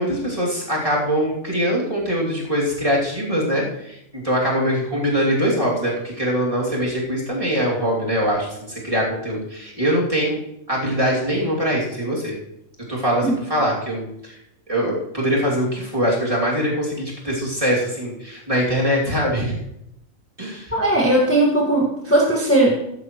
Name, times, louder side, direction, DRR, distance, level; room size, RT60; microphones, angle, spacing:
voice 1, 0.0-10.4 10.7-12.4 12.9-14.4 14.7-19.6 20.4-20.7, equal, 25° right, -5 dB, 3.0 m, -22 dB
voice 2, 20.7-22.8, right 1 dB, 10° left, -4 dB, 1.9 m, -18 dB
14.5 x 11.5 x 3.2 m, 0.80 s
omnidirectional pair, 1.4 m